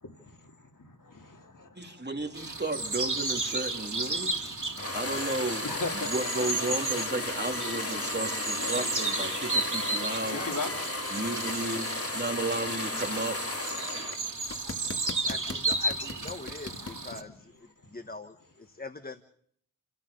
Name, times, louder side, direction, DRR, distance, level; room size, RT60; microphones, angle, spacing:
voice 1, 0.0-2.0 4.1-5.0 5.6-6.5 8.6-9.2 10.3-10.7 14.2-14.3 14.6-14.7 15.0-15.2 16.8-17.1, left 3 dB, 75° left, 3 dB, 3.0 m, -40 dB
voice 2, 1.7-4.5 4.9-5.7 5.9-10.5 11.1-13.4, right 2 dB, 30° right, 4 dB, 2.9 m, -33 dB
sound 1, 2.3-17.2, right 2 dB, 65° right, 3.0 m, -34 dB
sound 2, 4.8-14.2 14.5-17.0, left 2 dB, 45° left, 2.2 m, -35 dB
voice 3, 10.2-10.6 15.2-19.2, left 2 dB, 30° left, 9 dB, 1.2 m, -43 dB
29.5 x 14.5 x 6.8 m, 0.65 s
wide cardioid pair, 60°, 32 cm